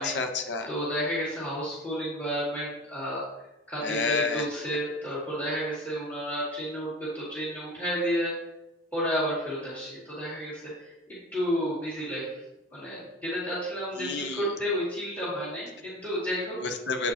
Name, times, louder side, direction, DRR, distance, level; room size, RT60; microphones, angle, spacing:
voice 1, 0.0-0.7 3.8-4.4 14.0-14.5 16.6-17.1, left 4 dB, 85° left, 5 dB, 0.9 m, -29 dB
voice 2, 0.7-3.2 3.7-8.3 8.9-12.4 12.7-16.6, equal, 10° left, -11 dB, 2.2 m, -31 dB
8.5 x 4.9 x 2.8 m, 0.93 s
head